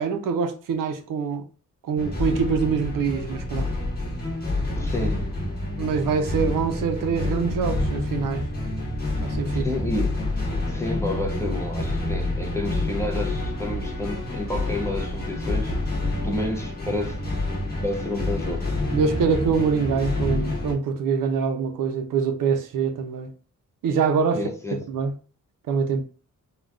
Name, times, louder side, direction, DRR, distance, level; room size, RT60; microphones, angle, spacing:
voice 1, 0.0-1.4 1.8-3.7 5.8-8.5 9.2-9.7 18.9-23.3 23.8-24.4 24.9-25.1 25.7-26.0, right 5 dB, 90° right, 0.6 m, -24 dB
sound 1, 2.0-20.7, left 2 dB, 30° left, 0.9 m, -28 dB
voice 2, 4.7-5.3 9.5-10.2 10.7-15.8 16.2-17.2 17.8-18.7 24.3-24.8, left 1 dB, 10° left, 0.4 m, -30 dB
3.7 x 2.2 x 2.3 m
wide cardioid pair, 165°, 32 cm